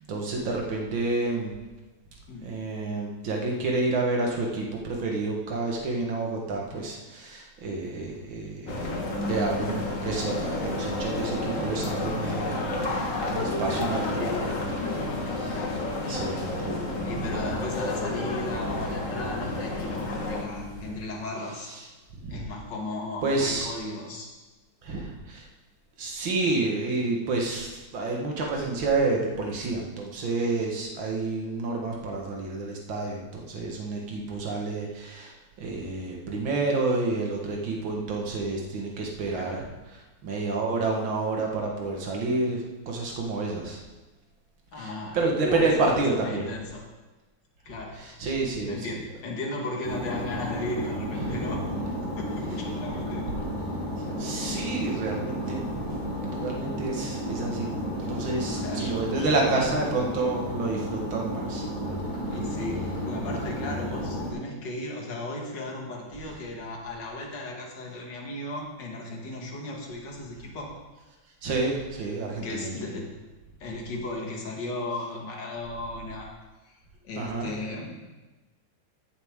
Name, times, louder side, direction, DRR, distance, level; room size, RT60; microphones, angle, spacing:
voice 1, 0.1-1.5 2.4-12.9 13.3-14.4 15.3-15.6 16.1-17.5 20.8-20.9 21.6-21.8 22.2-22.5 23.2-23.7 24.8-25.5 26.0-39.6 39.9-43.8 44.8-46.5 48.0-48.9 51.2-51.6 54.1-56.2 56.4-61.7 71.4-72.9 77.2-77.5, right 3 dB, 85° right, 0 dB, 2.3 m, -29 dB
washing machine, 7.6-7.7 7.8-7.9 8.9-21.9 22.3-22.7 23.0-23.1 24.9-25.0, left 5 dB, 30° right, 3.0 m, -40 dB
People on the street - downtown area, 8.7-20.4, left 2 dB, 45° left, 1.8 m, -31 dB
voice 2, 13.6-14.7 15.5-15.9 17.0-21.7 22.3-24.3 39.3-39.7 44.7-46.8 47.7-48.0 48.7-51.7 52.0-53.3 58.4-59.7 62.3-70.7 72.4-73.1 73.6-76.3 76.6-76.7 77.0-78.0, left 2 dB, 65° left, -1 dB, 2.3 m, -36 dB
sound 1, 49.8-64.3, equal, 20° left, 4.1 m, -32 dB
14.5 x 8.2 x 3.6 m, 1.1 s
omnidirectional pair, 2.1 m